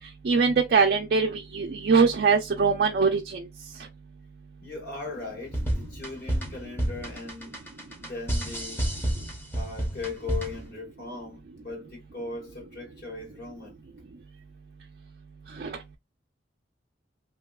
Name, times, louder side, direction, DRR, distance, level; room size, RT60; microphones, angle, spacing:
voice 1, 0.2-3.5 15.5-16.0, right 5 dB, 55° right, 0.4 m, -23 dB
voice 2, 4.6-7.6 8.0-8.8 9.5-13.8, left 3 dB, 55° left, 1.1 m, -38 dB
sound 1, 5.5-10.7, right 1 dB, 15° left, 0.7 m, -30 dB
3.0 x 2.7 x 2.3 m
head